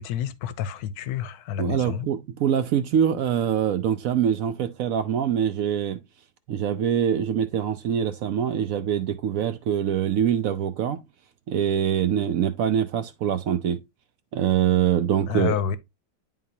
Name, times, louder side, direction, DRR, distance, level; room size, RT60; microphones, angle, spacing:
voice 1, 0.0-2.1 15.3-15.8, left 8 dB, 75° left, 1.1 m, -29 dB
voice 2, 1.6-6.0 6.5-11.0 11.5-13.8 14.3-15.8, right 9 dB, 70° right, 0.9 m, -24 dB
10.0 x 3.8 x 2.7 m
omnidirectional pair, 1.8 m